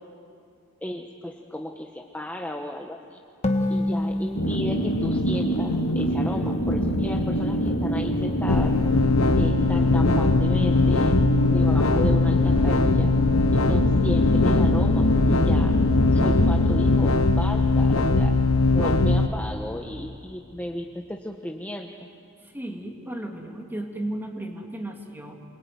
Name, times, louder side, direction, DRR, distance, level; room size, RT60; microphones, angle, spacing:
voice 1, 0.8-3.2 3.7-8.7 9.3-11.1 11.5-13.1 13.5-15.8 16.1-18.3 18.7-22.1, left 1 dB, 5° left, 2 dB, 1.1 m, -34 dB
sound 1, 3.4-6.9, left 1 dB, 30° left, 1.5 m, -29 dB
sound 2, 4.4-17.0, equal, 65° left, 2.5 m, -26 dB
sound 3, 8.5-19.3, left 3 dB, 85° left, 1.1 m, -20 dB
voice 2, 22.4-25.4, right 1 dB, 10° right, 2 dB, 2.7 m, -35 dB
28.0 x 22.0 x 9.6 m, 2.5 s
head